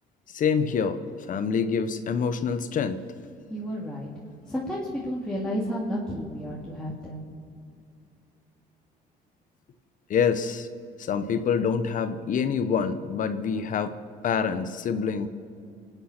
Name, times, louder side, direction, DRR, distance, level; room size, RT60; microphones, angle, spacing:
voice 1, 0.3-1.0 1.3-3.0 10.1-10.7 11.0-13.9 14.2-15.3, left 6 dB, 50° left, 11 dB, 0.9 m, -26 dB
voice 2, 3.5-4.1 4.5-7.2, equal, 5° left, -5 dB, 2.4 m, -31 dB
24.5 x 9.2 x 5.8 m, 2.5 s
cardioid pair, 110°, 17 cm